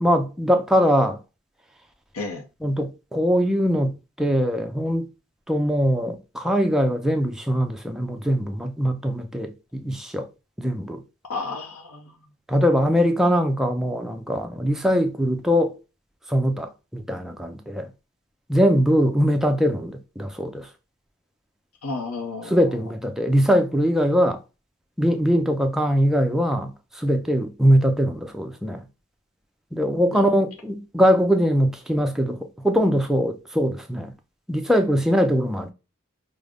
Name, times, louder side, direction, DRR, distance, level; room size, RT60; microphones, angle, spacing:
voice 1, 0.0-1.2 2.6-5.1 5.5-10.3 10.6-11.0 12.5-15.8 16.3-17.9 18.5-20.7 22.5-24.4 25.0-28.8 29.7-32.4 32.6-34.1 34.5-35.7, equal, ahead, 0.4 m, -22 dB
voice 2, 11.3-12.1 21.8-22.6 30.1-30.3, left 3 dB, 70° left, 0.6 m, -32 dB
5.0 x 2.1 x 3.4 m
head